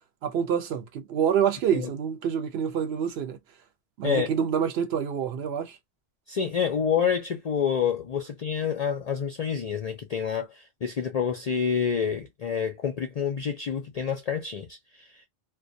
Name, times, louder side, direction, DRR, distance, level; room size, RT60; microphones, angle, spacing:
voice 1, 0.2-3.4 4.0-5.8, right 8 dB, 70° right, 0.8 m, -27 dB
voice 2, 6.3-15.3, left 7 dB, 60° left, 0.4 m, -28 dB
2.3 x 2.1 x 2.5 m
omnidirectional pair, 1.2 m